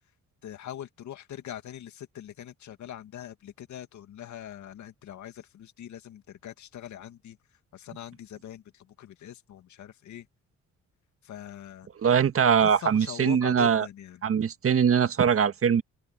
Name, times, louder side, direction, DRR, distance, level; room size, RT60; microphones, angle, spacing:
voice 1, 0.4-7.4 7.7-10.3 11.2-11.9 12.6-14.2, left 11 dB, 70° left, 2.2 m, -42 dB
voice 2, 12.0-13.9 14.2-15.8, right 7 dB, 50° right, 1.7 m, -22 dB
cardioid pair, 90°, 30 cm